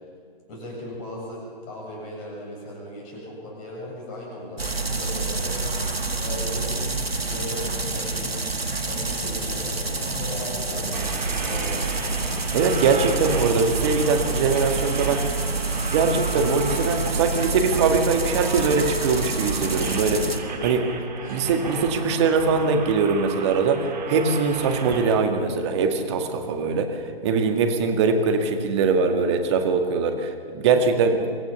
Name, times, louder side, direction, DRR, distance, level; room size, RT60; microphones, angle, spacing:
voice 1, 0.5-5.8 6.2-6.9 7.3-8.5 8.8-12.2 19.9-20.5 21.2-21.5, left 1 dB, 25° left, -3 dB, 7.4 m, -37 dB
sound 1, 4.6-20.4, right 3 dB, 80° right, 2.0 m, -27 dB
sound 2, 10.9-25.2, right 4 dB, 45° right, 2.5 m, -35 dB
voice 2, 12.5-15.3 15.9-20.2 20.6-20.9 21.3-31.2, right 4 dB, 30° right, 5 dB, 1.9 m, -22 dB
25.5 x 14.5 x 7.1 m, 2.2 s
figure-of-eight pair, 135°, 30 cm